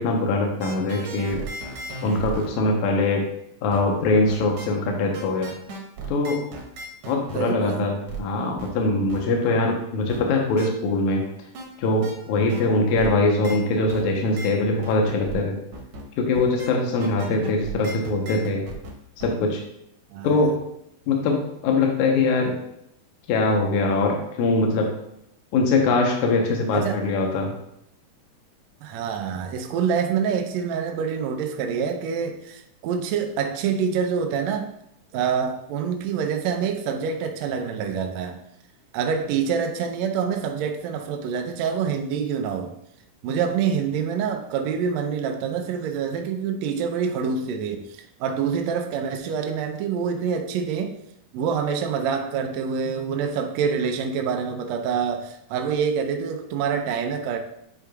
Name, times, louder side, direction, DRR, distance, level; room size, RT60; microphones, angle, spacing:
voice 1, 0.0-1.4 2.0-3.2 3.6-5.5 6.1-6.4 7.1-11.2 11.8-15.6 16.2-18.6 19.2-19.6 20.2-20.5 21.1-22.5 23.3-24.9 25.5-27.5, left 3 dB, 70° left, 1 dB, 2.2 m, -22 dB
sound 1, 0.6-2.5 3.7-3.8 4.3-4.7 5.1-7.4 8.1-8.2 8.6-8.7 9.1-9.2 10.1-10.2 10.6-10.7 11.5-11.7 12.0-12.1 12.5-12.6 12.9-13.1 13.4-13.6 13.9-14.0 14.4-14.5 14.8-15.4 15.7-16.0 16.3-16.7 17.0-18.9 19.2-19.3, right 3 dB, 65° right, 1.7 m, -35 dB
voice 2, 7.3-7.9 20.1-20.4 26.7-27.0 28.8-34.7 35.1-38.4 38.9-42.7 43.2-51.0 51.3-57.4, right 6 dB, 90° right, 4 dB, 1.5 m, -26 dB
10.0 x 4.5 x 2.3 m, 0.76 s
omnidirectional pair, 3.8 m